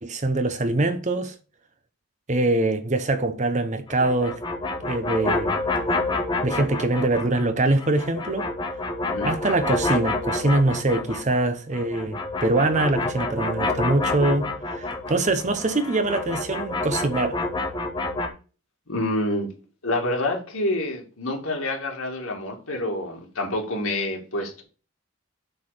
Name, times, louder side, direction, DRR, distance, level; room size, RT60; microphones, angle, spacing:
voice 1, 0.0-1.3 2.3-4.4 4.8-5.6 6.4-8.5 9.2-17.4, right 2 dB, 35° right, 0.9 m, -23 dB
sound 1, 3.9-7.5 7.8-11.4 11.7-18.3, left 2 dB, 20° left, 1.2 m, -28 dB
voice 2, 18.9-19.5 19.8-24.6, left 1 dB, 90° left, 2.4 m, -27 dB
7.9 x 4.0 x 6.6 m
head